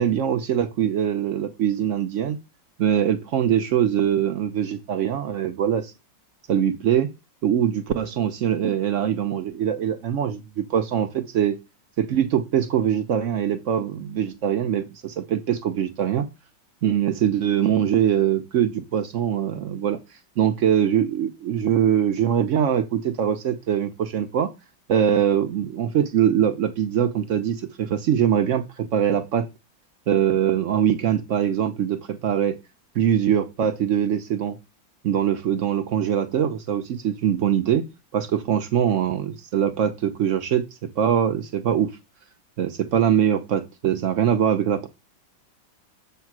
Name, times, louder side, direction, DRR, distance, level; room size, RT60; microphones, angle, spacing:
voice 1, 0.0-2.4 2.8-5.9 6.5-7.1 7.4-11.6 12.0-16.3 16.8-20.0 20.4-24.5 24.9-29.5 30.1-32.6 32.9-34.6 35.0-37.8 38.1-41.9 42.6-44.9, right 9 dB, 80° right, 9 dB, 0.6 m, -22 dB
7.3 x 3.5 x 5.9 m, 0.24 s
omnidirectional pair, 2.1 m